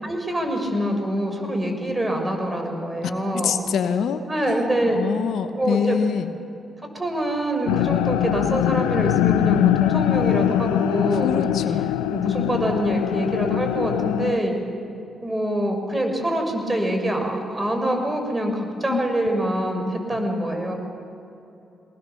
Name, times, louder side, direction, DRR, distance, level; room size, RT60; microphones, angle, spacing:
voice 1, 0.0-3.6 4.3-5.0 5.6-6.0 6.9-11.5 12.1-14.6 15.2-20.7, right 1 dB, 25° right, 3 dB, 6.1 m, -25 dB
voice 2, 3.3-4.6 4.9-6.3 11.1-11.9 18.9-19.0, left 7 dB, 70° left, 9 dB, 1.1 m, -25 dB
sound 1, 7.7-14.4, left 13 dB, 85° left, 0.5 m, -22 dB
24.0 x 20.0 x 7.0 m, 2.8 s
hypercardioid pair, 40°, 0 cm